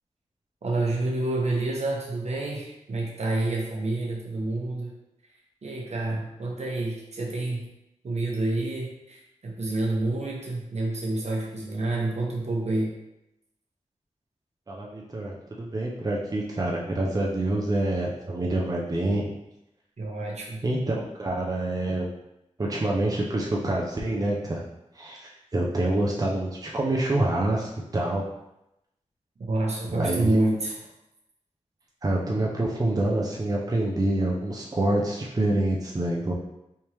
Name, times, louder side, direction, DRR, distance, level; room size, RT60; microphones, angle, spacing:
voice 1, 0.6-4.9 5.6-7.7 8.0-12.9 20.0-20.6 29.5-30.7, right 2 dB, 65° right, -1 dB, 0.9 m, -28 dB
voice 2, 14.7-19.3 20.6-22.1 22.6-24.6 25.0-28.2 29.9-30.4 32.0-36.3, right 1 dB, 30° right, -2 dB, 0.6 m, -26 dB
3.5 x 2.9 x 2.9 m, 0.87 s
cardioid pair, 60°, 12 cm